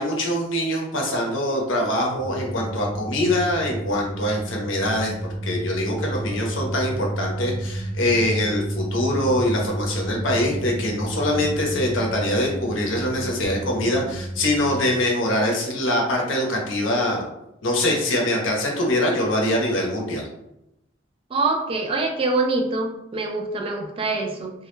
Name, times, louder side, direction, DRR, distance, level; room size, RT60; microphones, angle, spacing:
voice 1, 0.0-5.1 5.4-17.2 17.6-20.3, left 1 dB, 75° left, 0 dB, 0.6 m, -23 dB
sound 1, 2.2-14.8, right 1 dB, 20° left, 0.7 m, -31 dB
voice 2, 21.3-24.5, right 3 dB, 30° right, 2 dB, 0.3 m, -24 dB
2.2 x 2.0 x 3.0 m, 0.86 s
head